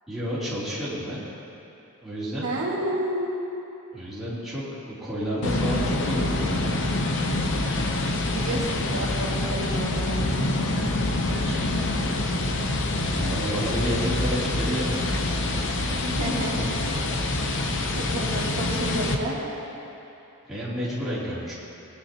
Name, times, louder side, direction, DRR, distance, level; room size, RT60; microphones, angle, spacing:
voice 1, 0.1-1.2 2.0-2.5 3.9-6.7 11.2-12.0 13.0-15.1 15.4-16.0 20.5-21.5, equal, ahead, -12 dB, 3.0 m, -31 dB
voice 2, 2.4-3.3 8.3-10.2 16.0-16.7 17.5-17.6 17.9-19.4, right 1 dB, 70° right, -5 dB, 2.1 m, -30 dB
sound 1, 5.4-19.1, left 2 dB, 55° left, 0.8 m, -26 dB
19.5 x 9.6 x 2.9 m, 2.9 s
head